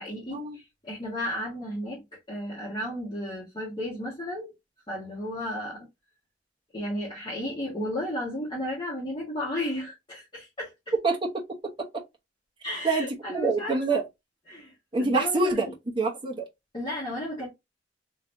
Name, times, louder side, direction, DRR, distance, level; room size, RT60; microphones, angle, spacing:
voice 1, 0.0-4.5 4.9-5.8 6.7-10.9 12.6-14.0 14.5-14.7 15.0-15.7 16.7-17.5, left 1 dB, 25° left, 1.4 m, -34 dB
voice 2, 11.0-11.9 12.8-13.1 13.3-14.0 14.9-15.7 16.0-16.4, right 3 dB, 25° right, 1.0 m, -26 dB
3.2 x 3.1 x 2.6 m
head